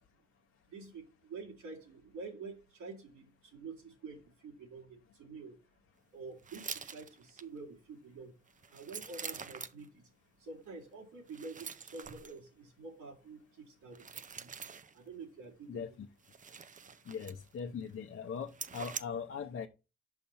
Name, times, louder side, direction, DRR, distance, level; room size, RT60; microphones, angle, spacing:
voice 1, 0.7-5.6 6.1-8.3 8.7-10.1 10.4-14.5 14.9-15.9, right 4 dB, 80° right, 2.5 m, -48 dB
sound 1, 6.4-7.4 8.5-9.9 11.3-12.4 13.9-15.0 16.2-17.6 17.9-18.0 18.5-19.0, right 6 dB, 25° right, 0.5 m, -45 dB
voice 2, 15.7-16.1 17.0-19.7, left 6 dB, 45° left, 0.7 m, -40 dB
5.7 x 5.5 x 4.3 m
cardioid pair, 90°, 30 cm